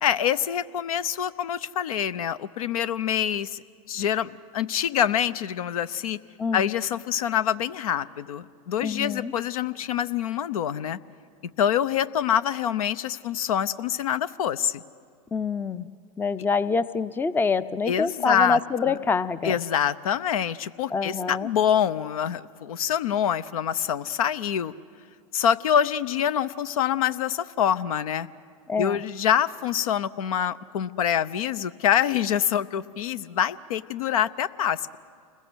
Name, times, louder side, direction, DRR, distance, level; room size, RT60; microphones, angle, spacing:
voice 1, 0.0-3.6 3.9-6.2 6.5-11.0 11.6-14.8 17.9-19.0 19.4-24.7 25.3-28.3 28.8-35.0, left 9 dB, 70° left, 15 dB, 0.7 m, -25 dB
voice 2, 6.4-6.7 8.8-9.3 15.3-15.9 16.2-19.6 20.9-21.5 28.7-29.0, left 4 dB, 10° left, 16 dB, 0.5 m, -26 dB
29.0 x 21.0 x 6.3 m, 2.1 s
hypercardioid pair, 95°, 19 cm